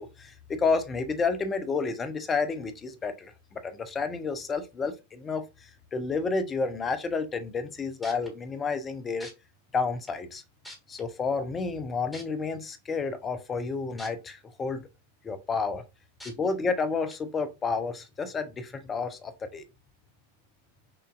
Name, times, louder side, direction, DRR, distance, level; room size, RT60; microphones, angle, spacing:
voice 1, 0.0-3.3 3.6-5.4 5.9-9.3 9.7-10.4 10.9-14.8 15.2-15.8 16.2-19.6, left 4 dB, 20° left, 0.7 m, -30 dB
sound 1, 8.0-8.3 9.2-9.3 10.1-10.2 10.6-11.0 12.1-12.2 14.0-14.1 14.6-14.7 16.2-16.3 17.1-17.2, left 1 dB, 5° left, 1.5 m, -43 dB
5.7 x 2.6 x 2.5 m
figure-of-eight pair, 90°, 0 cm